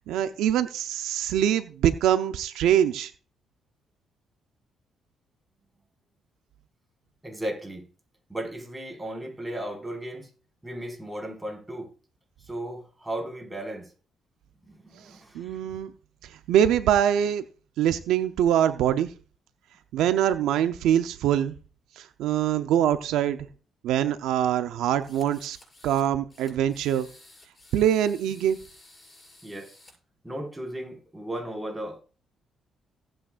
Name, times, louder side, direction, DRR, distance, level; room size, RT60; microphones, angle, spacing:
voice 1, 0.1-3.1 15.3-15.9 16.5-17.4 17.8-19.1 19.9-21.5 22.0-23.5 23.8-25.6 25.8-27.1 27.7-28.6, right 10 dB, 90° right, 0.7 m, -23 dB
voice 2, 7.2-7.8 8.3-10.3 10.6-11.9 12.4-13.9 14.6-15.8 29.4-29.7 30.2-32.0, right 1 dB, 10° right, 5.0 m, -36 dB
sound 1, 25.0-26.1 26.3-29.9, left 2 dB, 25° left, 6.6 m, -53 dB
17.5 x 8.8 x 2.5 m
cardioid pair, 90°, 0 cm